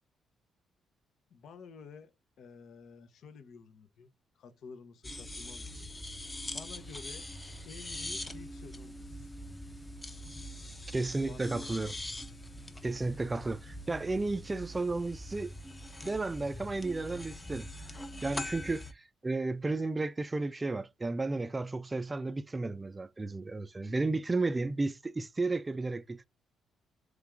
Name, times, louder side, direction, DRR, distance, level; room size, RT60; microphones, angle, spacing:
voice 1, 1.3-2.1 2.4-5.9 6.4-7.3 7.6-9.4 11.2-11.8, left 5 dB, 70° left, 0.8 m, -51 dB
sound 1, 5.0-18.9, left 1 dB, 15° left, 0.7 m, -43 dB
voice 2, 10.9-11.9 12.8-15.5 16.0-17.7 18.2-26.2, right 3 dB, 20° right, 0.3 m, -33 dB
3.5 x 3.3 x 3.5 m
cardioid pair, 90°, 0 cm